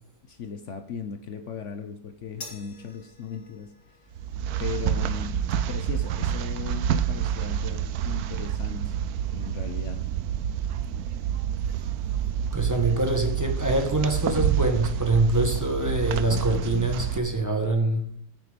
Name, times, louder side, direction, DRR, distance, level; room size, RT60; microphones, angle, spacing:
voice 1, 0.3-3.7 4.0-4.1 4.6-5.3 5.7-9.0 9.3-10.0, left 7 dB, 70° left, 8 dB, 0.7 m, -37 dB
sound 1, 2.4-9.0, left 3 dB, 45° left, 3.0 m, -51 dB
sound 2, 4.1-17.2, right 9 dB, 70° right, 0.9 m, -28 dB
voice 2, 12.5-18.1, right 2 dB, 10° right, 3 dB, 1.3 m, -24 dB
9.3 x 8.5 x 5.2 m, 0.64 s
omnidirectional pair, 2.2 m